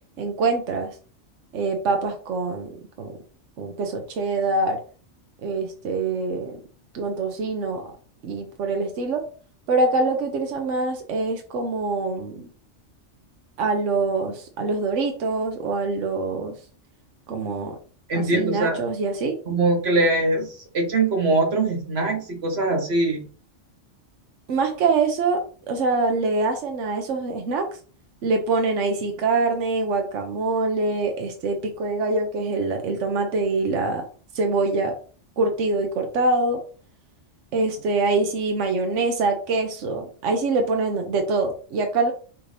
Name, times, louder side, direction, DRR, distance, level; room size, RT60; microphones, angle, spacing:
voice 1, 0.2-0.9 1.5-2.7 3.0-3.1 3.6-4.8 5.4-6.6 6.9-7.9 8.2-9.2 9.7-12.4 13.6-16.5 17.3-17.8 18.1-19.3 24.5-25.4 25.7-27.7 28.2-34.0 34.3-34.9 35.4-36.6 37.5-42.1, right 3 dB, 75° right, 4 dB, 1.1 m, -24 dB
voice 2, 18.1-18.8 19.5-20.5 20.7-23.2, right 2 dB, 60° right, 3 dB, 1.4 m, -22 dB
6.0 x 2.6 x 3.2 m, 0.40 s
omnidirectional pair, 1.2 m